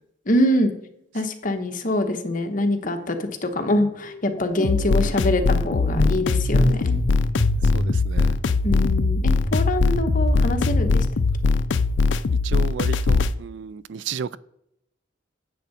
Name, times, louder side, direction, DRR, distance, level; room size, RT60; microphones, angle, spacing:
voice 1, 0.3-0.7 1.1-7.0 8.6-11.0, left 1 dB, 45° left, 1.1 m, -24 dB
sound 1, 2.8-3.2 3.4-12.2, equal, 25° left, 2.7 m, -28 dB
sound 2, 4.6-13.3, left 4 dB, 70° left, 0.5 m, -21 dB
voice 2, 7.7-8.4 12.4-14.4, right 7 dB, 70° right, 0.4 m, -33 dB
10.0 x 8.0 x 4.2 m
head